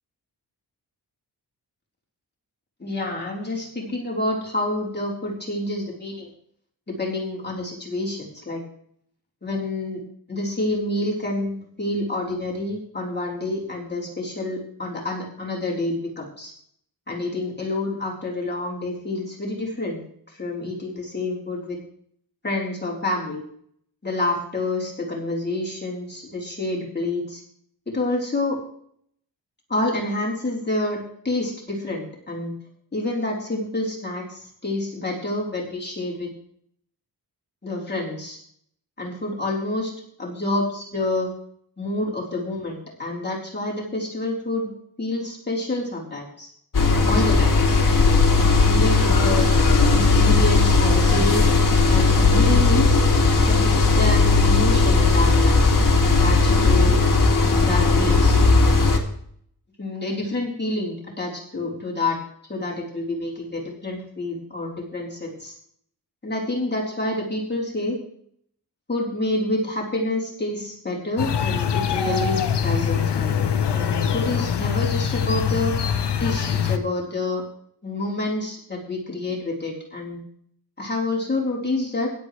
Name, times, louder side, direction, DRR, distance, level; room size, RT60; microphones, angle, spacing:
voice 1, 2.8-6.3 6.9-8.6 9.4-10.0 10.3-16.5 17.1-21.8 22.4-23.4 24.0-27.4 27.9-28.6 29.7-32.5 32.9-36.3 37.6-38.4 39.0-39.9 40.2-41.3 41.8-44.7 45.0-46.5 47.1-49.5 49.9-51.5 51.9-53.0 53.5-55.6 56.2-57.0 57.6-58.4 59.8-62.2 62.5-65.5 66.2-68.0 68.9-75.8 76.2-77.4 77.8-80.2 80.8-82.1, left 2 dB, 25° left, -3 dB, 3.9 m, -28 dB
sound 1, 46.7-59.0, left 3 dB, 50° left, 2.4 m, -17 dB
sound 2, 71.2-76.8, left 7 dB, 75° left, 1.0 m, -23 dB
16.5 x 11.5 x 3.2 m, 0.65 s
wide cardioid pair, 90°, 41 cm